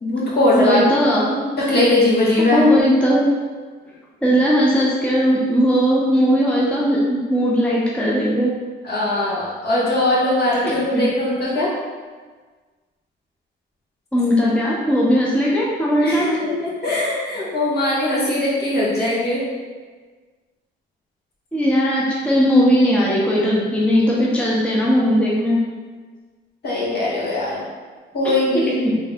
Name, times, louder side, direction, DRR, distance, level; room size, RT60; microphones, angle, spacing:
voice 1, 0.0-0.8 1.7-2.6 8.8-11.7 16.0-19.4 26.6-27.6 28.1-28.7, left 1 dB, 55° left, -7 dB, 1.4 m, -20 dB
voice 2, 0.5-1.8 2.5-3.2 4.2-8.5 10.6-11.0 14.1-16.3 21.5-25.6 28.5-29.0, equal, 5° left, -5 dB, 0.7 m, -18 dB
3.4 x 2.7 x 3.4 m, 1.4 s
cardioid pair, 90°, 20 cm